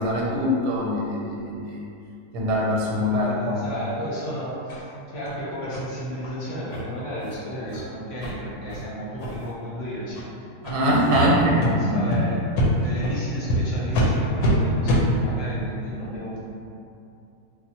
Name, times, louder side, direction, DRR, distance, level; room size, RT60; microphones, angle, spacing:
voice 1, 0.0-1.8 2.3-3.6 10.6-12.0, equal, 90° right, -3 dB, 1.2 m, -23 dB
voice 2, 2.9-10.5 11.1-12.4 12.8-16.4, equal, 60° left, -8 dB, 0.9 m, -33 dB
sound 1, 4.7-4.8 5.2-5.3 5.7-5.8 6.2-6.3 6.7-6.8 7.2-7.3 7.7-7.8 8.2-8.3 8.7-8.8 9.2-9.5 10.1-10.2 10.6-10.8 11.1-11.2 11.6-11.7 12.1-12.2 12.5-12.7 13.0-13.1 13.5-13.6 13.9-14.1 14.4-14.5 14.8-15.0, equal, 85° left, 1.2 m, -24 dB
3.4 x 2.3 x 2.8 m, 2.6 s
omnidirectional pair, 1.7 m